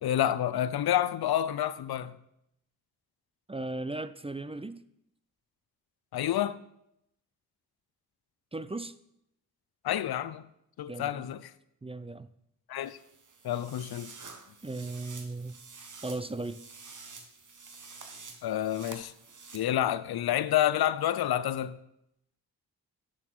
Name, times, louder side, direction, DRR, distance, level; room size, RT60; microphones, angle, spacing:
voice 1, 0.0-2.2 6.1-6.6 9.8-10.4 10.8-11.5 12.7-13.0 13.4-14.1 18.4-19.1 19.5-21.8, left 11 dB, 70° left, 0.5 m, -29 dB
voice 2, 3.5-4.8 8.5-8.9 10.9-11.3 11.8-12.3 14.6-15.6 16.0-16.6, right 2 dB, 15° right, 0.4 m, -37 dB
sound 1, 12.8-19.6, right 4 dB, 50° right, 1.2 m, -49 dB
6.8 x 6.2 x 6.0 m
cardioid pair, 50°, 38 cm